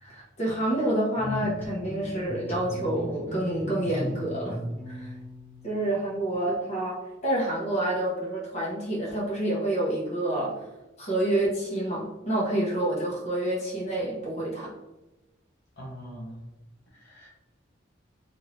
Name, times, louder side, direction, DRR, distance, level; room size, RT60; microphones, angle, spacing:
voice 1, 0.0-4.6 4.9-5.1 5.6-10.6 11.0-14.7, right 1 dB, 35° left, -5 dB, 1.0 m, -28 dB
sound 1, 1.2-6.3, left 1 dB, 10° left, 0.7 m, -37 dB
voice 2, 15.8-16.5 16.9-17.3, equal, 60° left, -4 dB, 0.9 m, -42 dB
2.9 x 2.6 x 3.0 m, 1.0 s
head